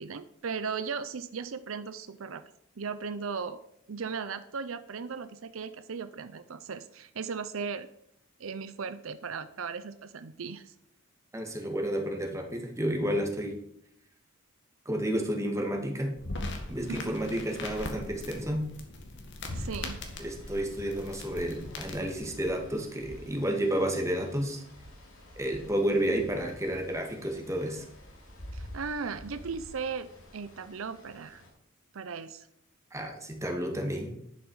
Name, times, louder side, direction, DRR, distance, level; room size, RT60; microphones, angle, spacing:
voice 1, 0.0-2.4 2.8-3.6 3.9-7.9 8.4-10.7 16.9-17.2 19.5-20.0 28.5-31.4 31.9-32.5, right 5 dB, 80° right, 12 dB, 0.6 m, -37 dB
voice 2, 11.3-13.6 14.9-16.1 16.7-18.7 20.2-24.6 25.4-27.9 32.9-34.2, right 1 dB, 15° right, 2 dB, 2.0 m, -31 dB
sound 1, 16.2-22.2, left 2 dB, 60° left, 2.0 m, -40 dB
sound 2, 19.5-31.5, left 1 dB, 85° left, 5.7 m, -47 dB
11.0 x 9.1 x 4.8 m, 0.72 s
head